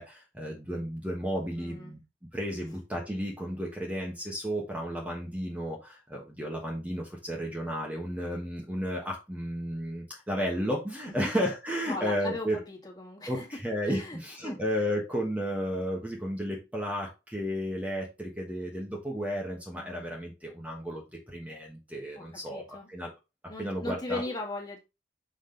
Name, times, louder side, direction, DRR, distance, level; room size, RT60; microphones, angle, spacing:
voice 1, 0.0-2.0 2.3-12.6 13.3-23.1 23.6-24.2, equal, 10° right, -1 dB, 1.2 m, -33 dB
voice 2, 1.5-2.0 2.6-2.7 11.1-11.3 11.9-13.5 13.8-14.2 14.4-14.6 19.7-20.1 22.1-22.9 23.5-24.8, left 2 dB, 20° left, 0 dB, 2.0 m, -38 dB
5.7 x 5.1 x 3.8 m, 0.26 s
head